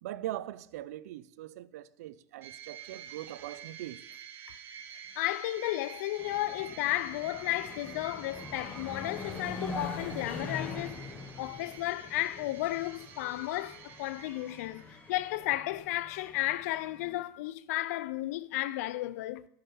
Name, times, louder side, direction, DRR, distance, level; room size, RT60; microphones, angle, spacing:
voice 1, 0.0-4.0, right 14 dB, 80° right, 0.5 m, -41 dB
sound 1, 2.4-15.2, right 8 dB, 25° right, 0.7 m, -49 dB
voice 2, 5.2-11.0 11.4-19.5, left 16 dB, 75° left, 0.5 m, -33 dB
sound 2, 6.2-17.2, left 3 dB, 15° left, 1.4 m, -44 dB
12.5 x 10.5 x 3.5 m
supercardioid pair, 155°, 8 cm